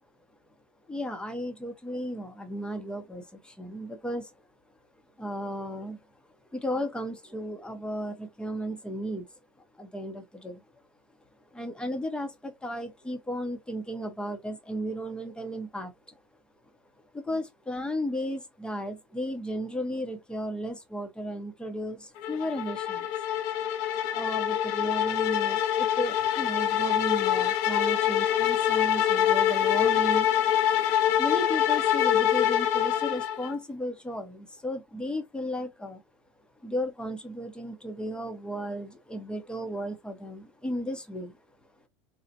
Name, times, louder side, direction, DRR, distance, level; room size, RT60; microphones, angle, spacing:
voice 1, 0.9-4.3 5.2-6.0 6.5-9.3 9.8-10.6 11.5-16.1 17.1-23.1 24.1-30.3 31.2-36.0 36.6-41.4, equal, 5° left, 0.7 m, -34 dB
sound 1, 22.2-33.6, left 10 dB, 55° left, 0.6 m, -25 dB
3.9 x 2.1 x 2.7 m
hypercardioid pair, 110°, 15 cm